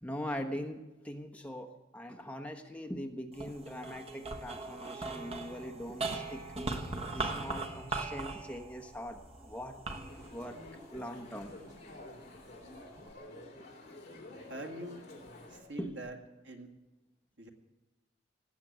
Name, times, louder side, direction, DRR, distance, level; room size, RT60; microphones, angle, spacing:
voice 1, 0.0-6.4 7.1-9.8 10.3-10.6 10.9-11.5 13.6-13.7 15.8-15.9, equal, 5° left, 4 dB, 1.1 m, -41 dB
sound 1, 3.3-11.8 12.4-13.1, right 3 dB, 35° right, 1.2 m, -40 dB
sound 2, 10.1-15.6, left 1 dB, 40° left, 3.8 m, -50 dB
voice 2, 14.3-15.0 15.5-16.2 16.4-16.7 17.4-17.5, right 1 dB, 75° right, 4 dB, 2.1 m, -43 dB
18.5 x 8.2 x 9.3 m, 1.0 s
head